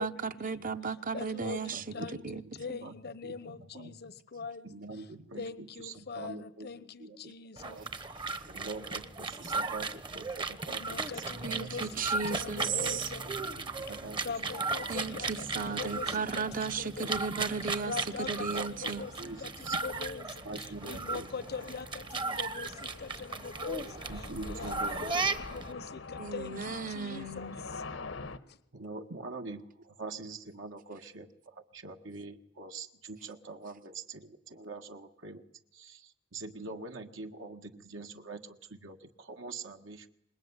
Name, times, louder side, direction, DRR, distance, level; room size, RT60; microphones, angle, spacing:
voice 1, 0.0-1.8 2.2-2.4 11.4-13.0 14.9-19.0 26.2-27.6, right 5 dB, 45° right, 1.1 m, -35 dB
voice 2, 1.1-2.2 2.5-4.7 5.4-7.8 10.7-13.2 14.2-17.1 17.8-18.5 18.8-19.5 19.8-20.4 20.8-24.0 24.5-24.7 25.5-27.5 28.5-28.6, left 5 dB, 55° left, 1.0 m, -42 dB
voice 3, 1.7-2.9 3.2-4.0 4.6-7.9 8.5-11.9 12.6-13.0 13.4-14.2 14.6-14.8 15.6-16.2 16.8-17.1 18.5-19.8 20.4-21.3 24.1-25.3 28.7-35.5 35.7-40.1, right 3 dB, 70° right, 1.7 m, -44 dB
sound 1, 7.6-25.7, right 3 dB, 25° right, 1.1 m, -36 dB
sound 2, 19.2-28.4, left 3 dB, 85° left, 1.5 m, -45 dB
26.0 x 21.0 x 9.7 m
head